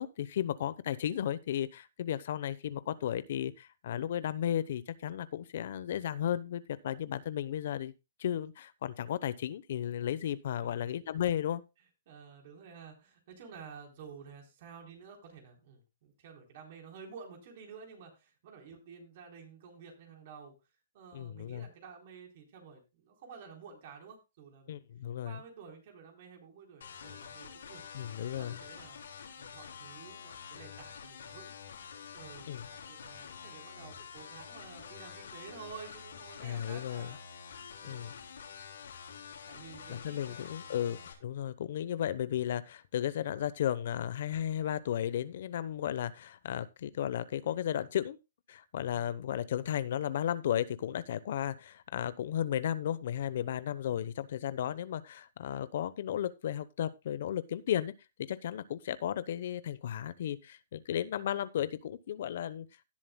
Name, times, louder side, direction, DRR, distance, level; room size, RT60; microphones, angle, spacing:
voice 1, 0.0-7.9 8.2-11.6 21.1-21.7 24.7-25.4 27.9-28.6 32.5-32.6 36.4-37.2 37.8-38.1 39.9-48.2 48.5-57.9 58.2-62.7, left 10 dB, 60° left, 0.8 m, -34 dB
voice 2, 12.1-20.5 20.9-24.8 25.2-27.8 28.2-29.1 29.4-31.5 32.1-32.6 32.9-37.2 37.8-38.1 39.5-40.8 53.8-54.1, right 6 dB, 50° right, 3.9 m, -51 dB
sound 1, 26.8-41.1, left 7 dB, 80° left, 3.3 m, -48 dB
17.5 x 7.5 x 2.2 m
hypercardioid pair, 150°, 0 cm